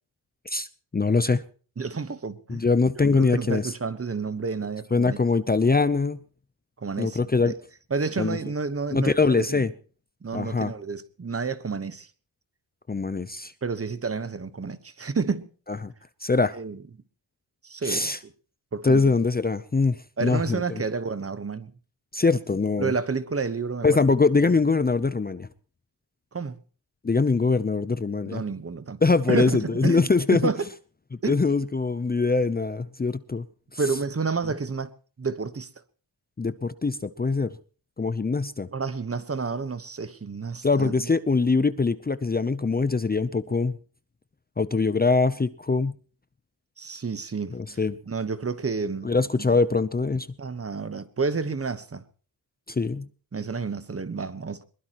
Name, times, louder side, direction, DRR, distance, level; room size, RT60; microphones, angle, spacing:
voice 1, 0.9-1.4 2.5-3.7 4.9-6.2 7.0-7.5 8.2-8.4 8.9-9.7 10.3-10.7 12.9-13.5 15.8-15.9 16.2-16.6 17.8-18.2 18.8-20.8 22.1-22.9 23.8-25.5 27.0-28.4 29.0-30.5 31.3-33.4 33.7-33.8 36.4-37.5 38.0-38.7 40.6-43.8 44.6-46.0 47.5-48.0 49.0-50.3 52.7-53.1, left 4 dB, 20° left, 0.7 m, -23 dB
voice 2, 1.8-2.6 3.0-5.2 6.8-7.5 7.9-9.6 10.2-12.1 13.6-15.5 16.5-16.8 17.6-18.1 18.7-19.1 20.2-21.7 22.8-24.0 26.3-26.6 28.3-29.0 29.3-30.0 30.3-30.6 31.2-31.4 33.8-34.9 35.2-35.7 38.7-41.1 46.8-47.8 48.1-49.1 49.4-49.6 50.4-52.0 53.3-54.6, right 4 dB, 35° right, 1.2 m, -30 dB
22.0 x 20.5 x 3.0 m
wide cardioid pair, 110°, 42 cm